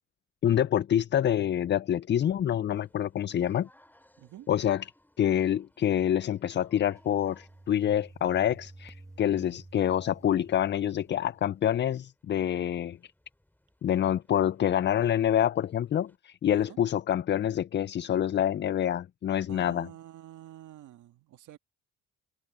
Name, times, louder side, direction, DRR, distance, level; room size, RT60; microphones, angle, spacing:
voice 1, 0.4-3.7 4.5-4.8 5.2-13.1 13.8-19.9, left 10 dB, 40° left, 0.4 m, -27 dB
sound 1, 2.7-16.2, left 1 dB, 5° left, 6.1 m, -66 dB
voice 2, 4.2-4.5 16.5-16.8 19.4-21.6, right 13 dB, 80° right, 1.8 m, -48 dB
sound 2, 6.2-11.9, right 2 dB, 10° right, 1.9 m, -52 dB
cardioid pair, 90°, 30 cm